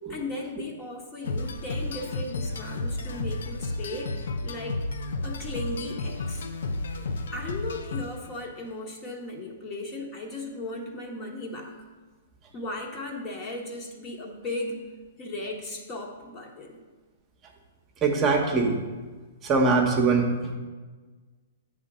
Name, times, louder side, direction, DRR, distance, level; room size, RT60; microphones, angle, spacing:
voice 1, 0.1-4.8 5.2-6.5 7.3-11.8 12.5-14.8 15.2-16.8, left 2 dB, 30° left, 0 dB, 1.2 m, -36 dB
sound 1, 1.2-8.4, left 2 dB, 75° left, 0.6 m, -32 dB
voice 2, 18.0-18.8 19.4-20.5, right 4 dB, 25° right, 1 dB, 0.9 m, -23 dB
8.0 x 3.7 x 6.1 m, 1.4 s
hypercardioid pair, 135°, 0 cm